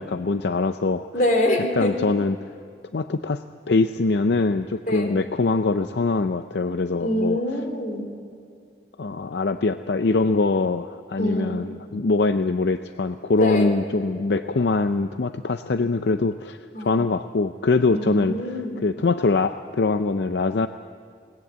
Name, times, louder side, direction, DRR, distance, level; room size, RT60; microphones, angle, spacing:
voice 1, 0.0-1.1 1.7-2.4 2.9-7.4 9.0-16.6 16.8-20.7, left 3 dB, 75° left, 9 dB, 0.5 m, -23 dB
voice 2, 1.1-2.1 4.9-5.2 7.0-8.1 11.2-11.7 13.4-13.8 16.7-17.0 17.9-18.8, left 1 dB, 50° left, 3 dB, 3.5 m, -25 dB
21.0 x 18.5 x 8.1 m, 2.4 s
head